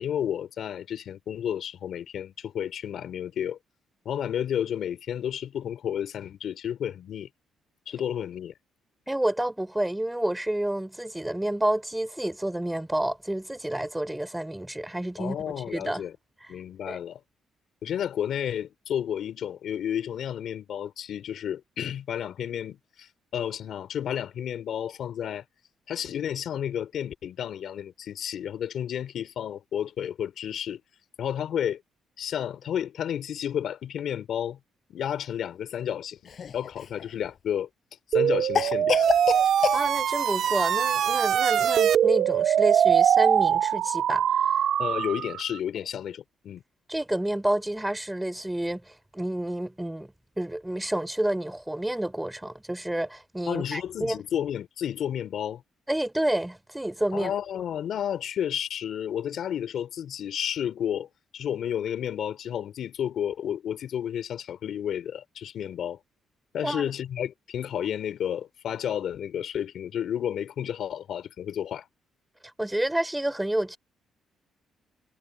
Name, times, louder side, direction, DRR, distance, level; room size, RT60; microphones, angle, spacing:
voice 1, 0.0-3.6 4.0-7.3 7.9-8.5 15.2-16.1 16.5-17.2 17.8-25.4 25.9-30.8 31.2-31.8 32.2-34.6 34.9-36.2 36.5-37.7 38.1-39.0 44.8-46.6 53.5-55.6 57.1-61.1 61.3-66.0 66.5-71.9, left 9 dB, 70° left, 3.0 m, -31 dB
voice 2, 9.1-16.0 16.9-17.0 39.7-44.6 46.9-50.1 50.4-54.2 55.9-57.3 66.6-66.9 72.6-73.8, right 1 dB, 10° right, 4.3 m, -29 dB
Cough, 36.2-37.0 38.5-39.8, left 7 dB, 50° left, 6.8 m, -27 dB
sound 1, 38.1-45.6, right 9 dB, 65° right, 2.1 m, -23 dB
cardioid pair, 90°, 0 cm